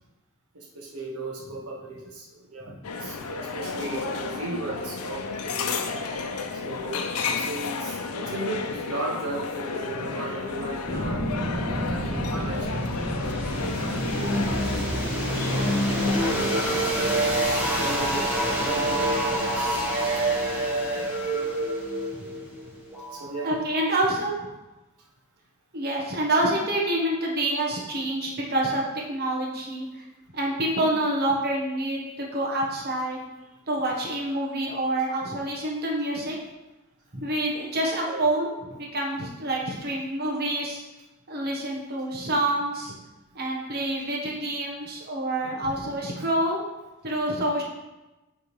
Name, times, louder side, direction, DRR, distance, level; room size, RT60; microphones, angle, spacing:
voice 1, 0.5-2.7 3.0-5.8 6.5-11.2 11.9-13.1 13.9-16.9 17.8-21.5 23.1-23.5 38.0-38.3 39.6-39.7 45.4-45.7 46.2-46.3, right 2 dB, 80° right, -1 dB, 1.2 m, -36 dB
sound 1, 2.8-16.9, left 4 dB, 85° left, 0.6 m, -32 dB
sound 2, 10.9-23.7, right 1 dB, 5° right, 1.3 m, -27 dB
voice 2, 23.4-24.3 25.7-30.0 30.3-33.2 33.7-36.4 37.1-40.8 41.3-43.0 43.3-46.6 47.0-47.6, right 1 dB, 45° right, -1 dB, 1.2 m, -27 dB
8.0 x 3.6 x 4.8 m, 1.0 s
head